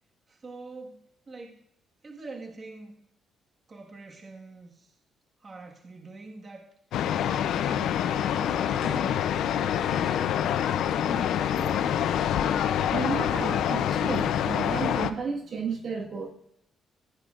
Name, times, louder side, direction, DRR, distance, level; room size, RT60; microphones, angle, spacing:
voice 1, 0.3-1.0 1.3-1.6 2.0-3.0 3.7-5.0 5.4-6.7 7.4-8.0 8.8-10.3 11.0-12.2, right 3 dB, 35° right, 1 dB, 1.6 m, -44 dB
sound 1, 6.9-15.1, left 9 dB, 80° left, 0.5 m, -26 dB
sound 2, 7.2-13.3, left 3 dB, 20° left, 3.7 m, -44 dB
voice 2, 12.9-16.3, right 5 dB, 55° right, 1 dB, 1.6 m, -32 dB
15.5 x 9.6 x 2.5 m, 0.73 s
cardioid pair, 90°, 0 cm